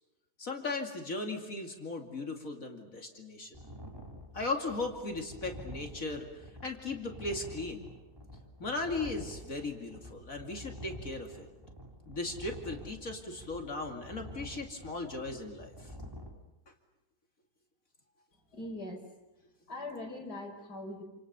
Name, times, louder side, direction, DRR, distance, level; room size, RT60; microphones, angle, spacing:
voice 1, 0.4-3.6 4.3-6.3 6.6-7.9 8.6-11.5 12.1-15.7, left 3 dB, 50° left, 3 dB, 2.9 m, -37 dB
sound 1, 3.5-16.3, equal, 15° right, 3.5 m, -48 dB
voice 2, 18.5-19.0 19.7-21.0, left 1 dB, 70° left, 1 dB, 5.7 m, -41 dB
29.0 x 27.0 x 6.9 m, 1.0 s
omnidirectional pair, 1.8 m